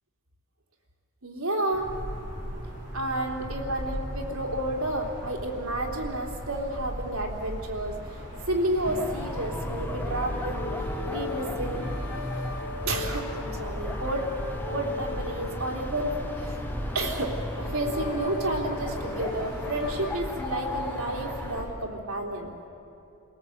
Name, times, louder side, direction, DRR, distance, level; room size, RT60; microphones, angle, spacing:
voice 1, 1.2-1.9 2.9-8.0 8.5-10.7 11.1-11.8 12.9-14.3 14.7-16.6 16.9-22.5, right 1 dB, 80° right, 0 dB, 3.5 m, -31 dB
sound 1, 1.7-21.7, equal, 15° right, 7.2 m, -39 dB
sound 2, 8.8-21.6, equal, 10° left, 1.1 m, -35 dB
sound 3, 10.0-20.1, left 5 dB, 50° left, 1.7 m, -40 dB
28.0 x 18.0 x 8.2 m, 2.7 s
head